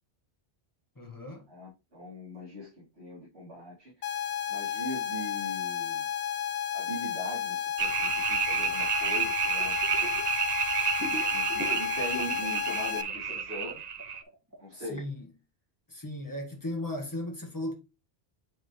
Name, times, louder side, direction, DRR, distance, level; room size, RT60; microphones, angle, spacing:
voice 1, 1.0-1.5 14.7-15.3 15.9-17.7, left 1 dB, 20° left, 1.5 m, -36 dB
voice 2, 1.5-4.1 4.5-6.1 6.7-9.8 11.0-13.8 14.6-15.0, left 1 dB, 80° right, 2.9 m, -41 dB
sound 1, 4.0-13.0, left 9 dB, 75° left, 0.9 m, -32 dB
sound 2, 7.8-14.2, right 7 dB, 50° right, 0.6 m, -30 dB
sound 3, 9.6-10.3 10.5-12.6 12.8-15.0, left 1 dB, 15° right, 1.8 m, -41 dB
8.0 x 3.8 x 3.1 m
omnidirectional pair, 1.1 m